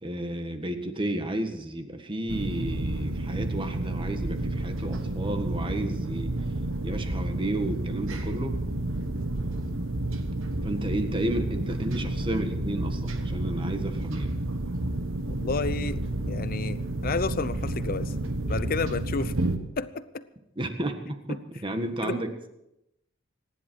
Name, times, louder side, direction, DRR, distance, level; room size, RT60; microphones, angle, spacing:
voice 1, 0.0-6.3 6.8-8.6 10.6-14.4 20.6-22.5, right 1 dB, 25° right, 6 dB, 1.7 m, -32 dB
sound 1, 2.3-19.6, right 1 dB, 85° right, 1.5 m, -30 dB
voice 2, 15.3-18.1 18.5-19.3 19.8-20.2 21.3-21.4 22.0-22.2, left 4 dB, 50° left, 14 dB, 0.7 m, -31 dB
25.5 x 10.5 x 4.7 m, 0.86 s
head